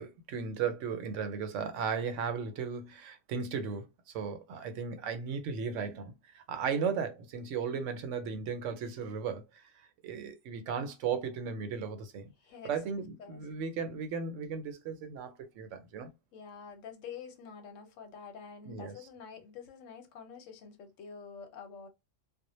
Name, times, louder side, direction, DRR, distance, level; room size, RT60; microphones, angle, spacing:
voice 1, 0.0-3.9 4.1-9.6 10.0-12.3 12.6-16.1 18.6-19.0, right 6 dB, 75° right, 0.9 m, -36 dB
voice 2, 12.4-12.7 13.2-13.4 16.3-21.9, left 6 dB, 85° left, 1.0 m, -47 dB
2.1 x 2.1 x 2.9 m
omnidirectional pair, 1.3 m